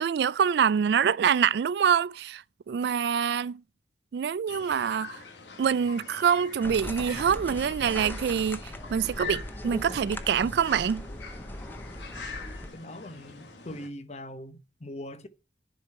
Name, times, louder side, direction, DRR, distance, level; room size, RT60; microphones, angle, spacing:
voice 1, 0.0-3.6 4.1-5.2 5.6-8.6 8.9-11.1, right 7 dB, 65° right, 0.3 m, -25 dB
sound 1, 4.5-13.9, left 5 dB, 90° left, 1.8 m, -44 dB
sound 2, 6.6-12.7, left 1 dB, 10° left, 0.7 m, -39 dB
voice 2, 12.7-15.3, left 1 dB, 40° left, 0.9 m, -41 dB
10.5 x 4.8 x 4.3 m
head